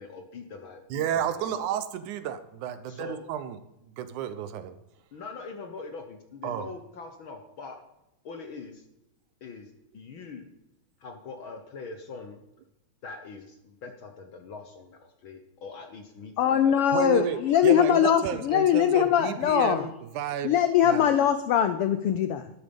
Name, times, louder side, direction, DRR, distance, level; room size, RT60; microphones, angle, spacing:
voice 1, 0.0-1.6 2.8-3.2 5.1-7.8 8.2-8.8 9.4-10.5 11.0-12.4 13.0-16.8, left 4 dB, 55° left, 1.5 m, -43 dB
voice 2, 0.9-3.6 3.9-4.8 6.4-6.7 16.9-20.5 20.8-21.1, right 9 dB, 80° right, 2.4 m, -31 dB
voice 3, 16.4-19.9 20.4-22.5, left 9 dB, 85° left, 1.2 m, -22 dB
12.5 x 11.5 x 5.3 m
omnidirectional pair, 3.5 m